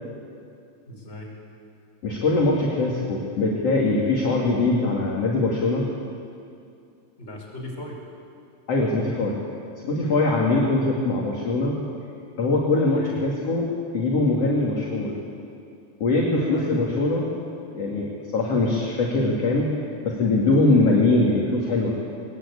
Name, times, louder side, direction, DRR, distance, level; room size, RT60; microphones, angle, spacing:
voice 1, 0.9-1.3 7.2-8.0 10.4-10.7 12.9-13.2 16.5-16.8, equal, 15° left, -2 dB, 4.7 m, -37 dB
voice 2, 2.0-5.9 8.7-9.4 9.8-11.8 12.4-15.1 16.0-17.3 17.7-19.7 20.0-21.9, left 2 dB, 40° left, -3 dB, 2.8 m, -22 dB
21.5 x 21.5 x 8.5 m, 2.4 s
omnidirectional pair, 5.6 m